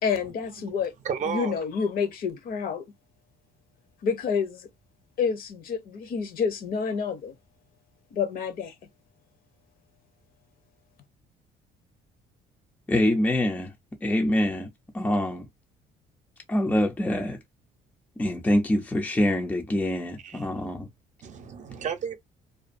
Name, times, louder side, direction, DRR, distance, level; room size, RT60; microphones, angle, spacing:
voice 1, 0.0-0.9 1.3-2.9 4.0-4.7 5.2-7.3 8.1-8.7, left 6 dB, 60° left, 0.7 m, -28 dB
voice 2, 1.0-1.6 20.2-20.5 21.2-22.2, right 7 dB, 45° right, 0.6 m, -32 dB
voice 3, 12.9-13.7 14.0-14.7 14.9-15.5 16.5-17.4 18.2-20.9, left 1 dB, 10° left, 0.4 m, -25 dB
2.5 x 2.3 x 2.5 m
cardioid pair, 110°, 17 cm